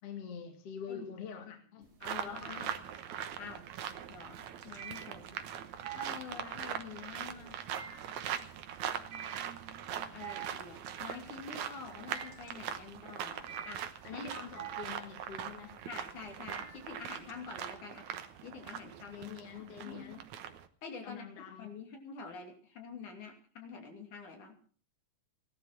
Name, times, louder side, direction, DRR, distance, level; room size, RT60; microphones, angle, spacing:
voice 1, 0.0-2.8 14.0-15.8 19.1-20.3 21.0-21.8, left 7 dB, 50° left, 3 dB, 2.8 m, -46 dB
sound 1, 1.8-2.5 2.8-17.3, right 9 dB, 50° right, 3.3 m, -48 dB
voice 2, 2.0-2.7 3.4-3.7 4.1-5.5 5.9-7.6 10.1-13.8 14.1-14.3 15.9-18.1 18.4-19.3 19.8-20.2 20.8-21.3 21.6-24.6, left 5 dB, 65° left, 3 dB, 4.1 m, -47 dB
sound 2, 2.0-20.7, right 9 dB, 65° right, 2.3 m, -42 dB
17.0 x 12.0 x 5.9 m, 0.43 s
omnidirectional pair, 3.8 m